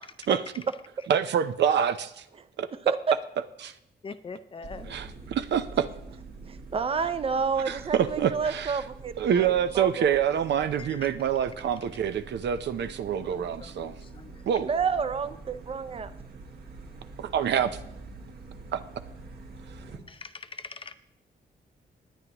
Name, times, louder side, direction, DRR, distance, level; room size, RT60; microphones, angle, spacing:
voice 1, 1.1-2.2 2.6-2.7 3.6-3.7 4.8-5.9 7.7-8.7 9.2-13.9 14.5-14.7 17.2-17.7 18.7-18.8, right 8 dB, 75° right, 11 dB, 0.7 m, -26 dB
voice 2, 2.7-3.2 6.5-10.2 14.6-16.1, right 5 dB, 30° right, 11 dB, 0.6 m, -29 dB
voice 3, 4.0-4.9 10.8-11.1 13.2-14.4 20.1-20.9, left 4 dB, 30° left, 11 dB, 0.5 m, -43 dB
sound 1, 4.6-20.0, right 3 dB, 60° right, 1.8 m, -45 dB
19.5 x 9.7 x 3.0 m, 0.84 s
wide cardioid pair, 170°, 18 cm